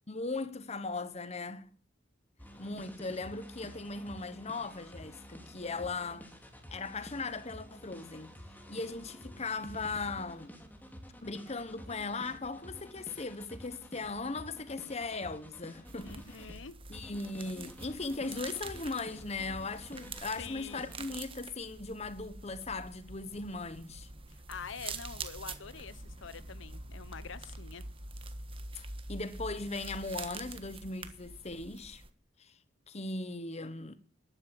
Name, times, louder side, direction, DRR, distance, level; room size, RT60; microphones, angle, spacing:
voice 1, 0.1-1.7 2.6-6.3 6.7-8.3 8.7-10.5 11.2-16.5 16.9-24.1 28.7-32.0 32.4-32.6 32.9-34.0, left 3 dB, 35° left, 1.2 m, -38 dB
sound 1, 2.4-16.6 16.9-21.2, equal, 10° left, 2.7 m, -50 dB
sound 2, 15.8-32.1, right 3 dB, 30° right, 1.4 m, -46 dB
voice 2, 16.0-16.8 20.4-20.9 24.3-27.8, left 6 dB, 75° left, 0.8 m, -46 dB
13.0 x 11.5 x 7.6 m
head